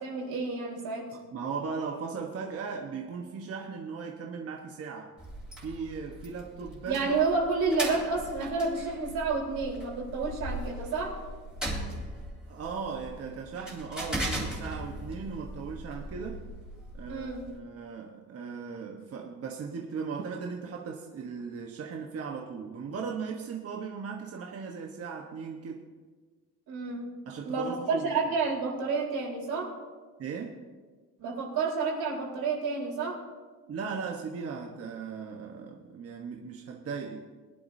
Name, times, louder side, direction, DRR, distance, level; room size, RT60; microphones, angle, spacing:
voice 1, 0.0-1.2 6.8-11.2 17.1-17.5 26.7-27.1 27.4-29.7 31.2-33.2, right 4 dB, 80° right, -2 dB, 4.1 m, -30 dB
voice 2, 1.3-5.1 5.6-7.2 12.5-16.4 16.9-25.8 27.3-28.1 30.2-30.5 33.7-37.2, right 5 dB, 40° right, 0 dB, 1.2 m, -37 dB
sound 1, 5.2-17.6, right 1 dB, ahead, 3.4 m, -39 dB
22.0 x 11.0 x 2.7 m, 1.4 s
cardioid pair, 135°, 36 cm